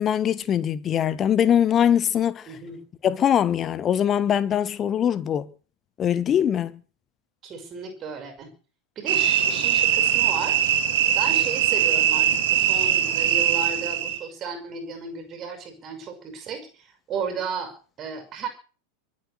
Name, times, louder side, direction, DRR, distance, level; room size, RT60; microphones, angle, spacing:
voice 1, 0.0-2.5 3.0-5.5 6.0-6.7, left 9 dB, 25° left, 1.2 m, -22 dB
voice 2, 2.5-2.8 7.4-8.5 9.0-10.7 11.1-18.5, right 5 dB, 30° right, 5.7 m, -34 dB
sound 1, 9.1-14.2, right 10 dB, 55° right, 3.4 m, -21 dB
23.5 x 8.5 x 6.6 m
figure-of-eight pair, 90°, 0 cm